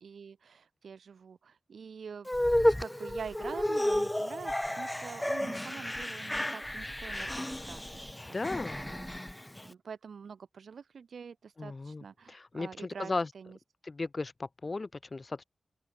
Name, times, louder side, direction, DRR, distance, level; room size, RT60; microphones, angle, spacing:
voice 1, 0.0-2.3 2.8-8.0 8.4-13.6, right 6 dB, 75° right, 1.9 m, -46 dB
sound 1, 2.3-9.7, left 1 dB, 10° left, 0.8 m, -32 dB
voice 2, 8.3-8.8 11.6-13.3 13.8-15.4, left 3 dB, 40° left, 0.8 m, -36 dB
open air
cardioid pair, 70°, 0 cm